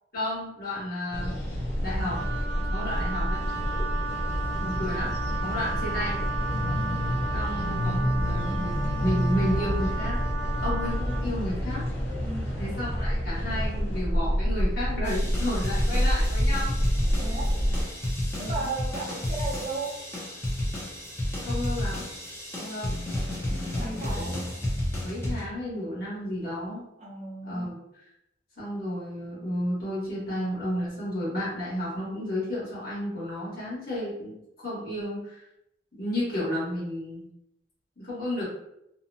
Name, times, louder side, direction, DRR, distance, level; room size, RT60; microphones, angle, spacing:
voice 1, 0.1-1.3 1.8-2.2 2.7-3.4 4.6-5.1 5.4-6.2 7.3-10.2 10.6-11.9 12.6-16.8 18.3-18.7 21.4-22.1 22.6-22.9 23.8-24.4 25.0-26.9 27.4-28.1 28.6-35.4 35.9-37.2 38.0-38.4, left 1 dB, 60° left, -8 dB, 1.4 m, -32 dB
sound 1, 1.1-17.8, equal, 80° left, 0.7 m, -28 dB
Wind instrument woodwind instrument, 2.1-11.3, right 3 dB, 80° right, 0.4 m, -35 dB
voice 2, 12.2-12.6 17.2-17.5 18.4-20.0 23.8-24.5 27.0-27.7, right 3 dB, 40° right, -3 dB, 0.6 m, -35 dB
sound 2, 15.0-25.5, left 1 dB, 15° left, 0.7 m, -31 dB
2.8 x 2.1 x 2.7 m, 0.82 s
head